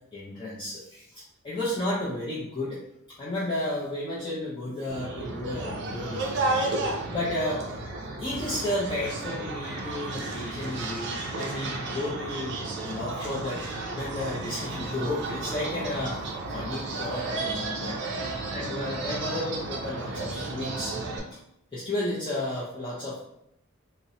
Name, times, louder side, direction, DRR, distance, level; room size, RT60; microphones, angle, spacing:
voice 1, 0.1-2.8 3.2-6.7 7.1-7.6 8.2-12.6 12.8-13.6 14.0-16.2 16.5-18.1 18.5-20.9 21.7-23.2, left 1 dB, 25° left, -8 dB, 0.4 m, -32 dB
sound 1, 4.9-21.2, right 2 dB, 55° right, 0.4 m, -33 dB
2.5 x 2.0 x 2.7 m, 0.79 s
head